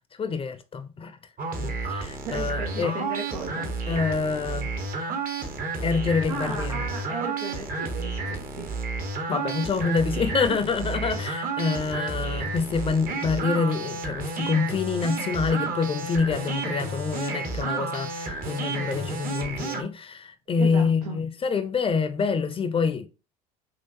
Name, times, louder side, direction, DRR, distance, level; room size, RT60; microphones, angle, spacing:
voice 1, 0.2-1.2 1.6-2.9 3.9-4.7 5.8-6.8 9.3-23.1, left 5 dB, 30° left, 0.6 m, -26 dB
sound 1, 1.4-19.8, right 4 dB, 45° right, 1.1 m, -31 dB
voice 2, 2.2-3.7 6.3-8.7 20.6-21.2, right 3 dB, 85° right, 1.0 m, -35 dB
5.7 x 2.5 x 2.6 m
hypercardioid pair, 65°, 19 cm